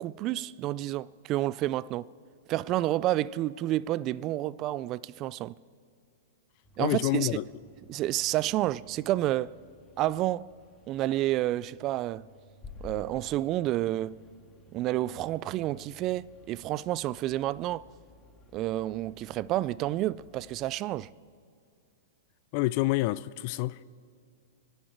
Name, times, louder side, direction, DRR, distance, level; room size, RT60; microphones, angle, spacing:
voice 1, 0.0-2.1 2.5-5.6 6.8-7.4 7.9-9.5 10.0-10.5 10.9-12.2 12.8-14.2 14.7-17.8 18.5-21.1, right 15 dB, 35° right, 0.3 m, -29 dB
sound 1, 6.6-20.7, left 2 dB, 25° left, 1.9 m, -54 dB
voice 2, 6.8-7.4 22.5-23.8, left 18 dB, 50° left, 0.4 m, -28 dB
29.5 x 10.0 x 4.5 m
hypercardioid pair, 110°, 0 cm